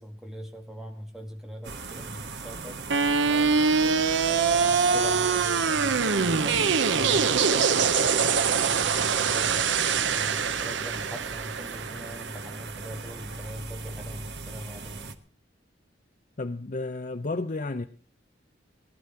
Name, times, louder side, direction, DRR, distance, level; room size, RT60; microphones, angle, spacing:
voice 1, 0.0-9.7 10.1-15.2, equal, 5° right, 2 dB, 2.1 m, -41 dB
sound 1, 1.6-15.2, right 3 dB, 65° right, 1.4 m, -40 dB
sound 2, 2.9-12.9, right 5 dB, 85° right, 0.8 m, -24 dB
voice 2, 16.4-17.8, left 2 dB, 45° left, 8 dB, 0.7 m, -32 dB
19.0 x 12.0 x 4.4 m, 0.39 s
head